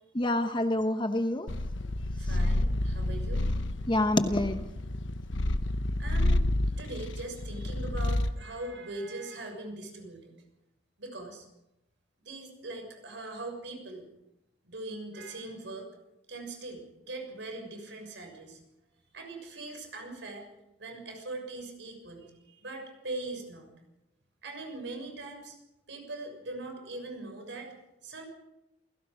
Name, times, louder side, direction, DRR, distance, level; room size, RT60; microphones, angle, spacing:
voice 1, 0.1-1.5 3.9-4.6, left 1 dB, 25° left, 8 dB, 1.0 m, -27 dB
Purr, 1.5-8.4, left 1 dB, 90° left, 1.1 m, -29 dB
voice 2, 2.2-3.5 6.0-6.5 6.8-10.3 11.0-11.5 12.2-14.1 14.6-15.9 16.3-18.6 19.1-20.4 20.8-23.7 24.4-25.5 25.9-27.7 28.0-28.3, right 2 dB, 75° right, 4 dB, 6.6 m, -41 dB
28.0 x 17.5 x 5.3 m, 0.92 s
head